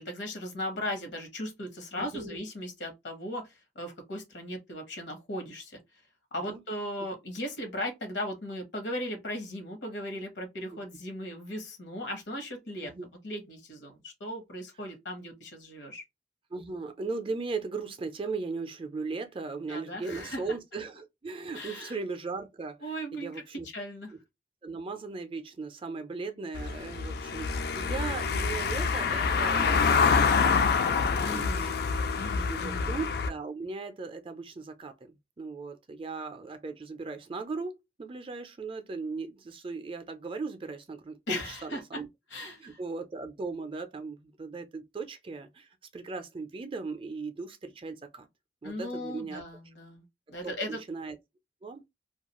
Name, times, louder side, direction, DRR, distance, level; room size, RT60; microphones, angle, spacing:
voice 1, 0.0-5.8 6.3-12.9 13.2-16.0 19.7-20.4 21.5-22.0 22.8-24.1 31.2-31.8 32.2-32.9 41.3-42.0 42.3-42.8 48.6-50.8, left 1 dB, 75° left, 0.9 m, -37 dB
voice 2, 2.0-2.4 6.4-6.6 12.8-13.1 16.5-22.9 23.2-23.7 24.1-24.2 24.6-30.6 31.3-31.7 32.5-42.1 42.6-48.3 48.6-49.4 50.4-51.2 51.6-51.8, right 4 dB, 30° right, 0.4 m, -38 dB
Car passing by / Engine, 26.5-33.3, left 5 dB, 60° left, 0.3 m, -26 dB
2.3 x 2.3 x 2.9 m
head